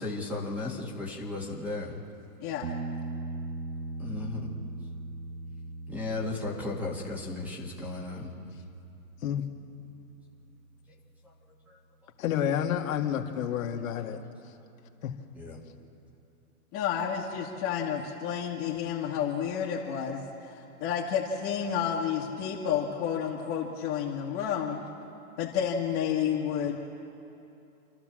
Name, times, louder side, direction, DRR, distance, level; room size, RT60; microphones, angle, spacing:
voice 1, 0.0-2.0 4.0-4.5 5.9-8.3 11.2-11.3 11.7-11.8 14.2-14.3 15.3-15.6, left 2 dB, 5° right, -2 dB, 1.9 m, -35 dB
voice 2, 2.4-2.7 16.7-24.8 25.4-26.8, left 8 dB, 30° left, -6 dB, 2.0 m, -30 dB
sound 1, 2.6-10.2 13.3-13.4, right 2 dB, 50° right, 1.7 m, -40 dB
voice 3, 12.2-14.2 15.0-15.1, left 9 dB, 60° left, 3 dB, 2.0 m, -29 dB
29.0 x 12.0 x 7.5 m, 2.7 s
hypercardioid pair, 150°, 45 cm